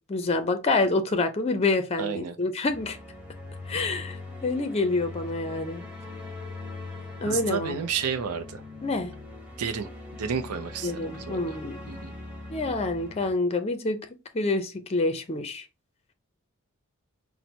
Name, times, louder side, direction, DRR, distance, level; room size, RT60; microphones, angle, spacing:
voice 1, 0.1-3.0 3.7-5.8 7.2-7.8 8.8-9.1 10.8-11.8 12.5-14.0 14.3-15.6, left 2 dB, 30° left, 0.5 m, -27 dB
voice 2, 2.0-2.4 7.3-8.6 9.6-9.9 10.2-11.6 11.9-12.1, right 6 dB, 85° right, 0.5 m, -31 dB
sound 1, 2.7-13.3, left 2 dB, 5° right, 1.0 m, -41 dB
4.3 x 2.1 x 4.2 m
head